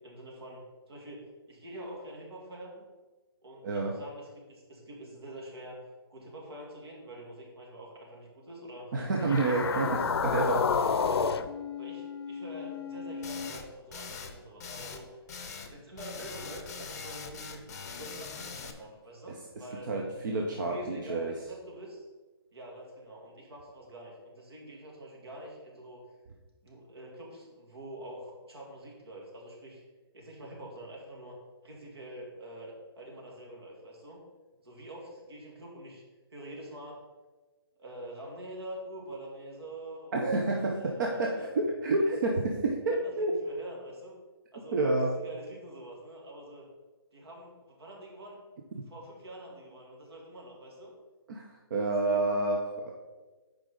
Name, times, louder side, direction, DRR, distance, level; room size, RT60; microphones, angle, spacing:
voice 1, 0.0-2.8 3.4-5.8 6.1-8.9 9.3-10.0 11.0-11.3 11.8-15.1 15.7-17.7 17.9-19.9 20.6-22.1 22.5-26.0 26.6-29.8 30.1-31.3 31.6-34.2 34.6-36.0 36.3-37.0 37.8-40.2 40.5-41.5 41.9-42.0 42.9-43.1 43.4-44.2 44.5-44.8 45.1-46.7 47.1-48.5 48.9-50.9 52.0-52.3, right 1 dB, 75° right, -1 dB, 2.5 m, -46 dB
voice 2, 3.6-4.0 8.9-11.0 19.3-21.3 40.1-43.3 44.7-45.1 51.3-52.9, right 2 dB, 50° right, 0 dB, 0.8 m, -29 dB
sound 1, 9.1-13.5, left 6 dB, 75° left, 0.5 m, -31 dB
sound 2, 13.2-13.6 13.9-14.3 14.6-15.0 15.3-15.7 16.0-18.7, left 5 dB, 40° left, 0.7 m, -42 dB
8.4 x 5.0 x 3.8 m, 1.2 s
hypercardioid pair, 170°, 13 cm